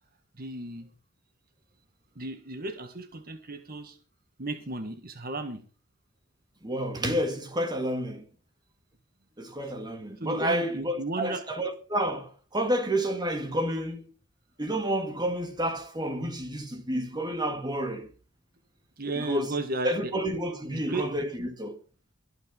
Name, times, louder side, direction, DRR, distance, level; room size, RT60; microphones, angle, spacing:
voice 1, 0.4-0.9 2.1-4.0 4.4-5.6 10.2-11.4 19.0-20.1 20.7-21.1, right 2 dB, 45° right, 1.6 m, -34 dB
voice 2, 6.6-8.2 9.4-14.1 14.6-18.1 19.2-19.5 19.8-21.8, equal, 20° right, 2.1 m, -30 dB
23.0 x 9.0 x 3.9 m
head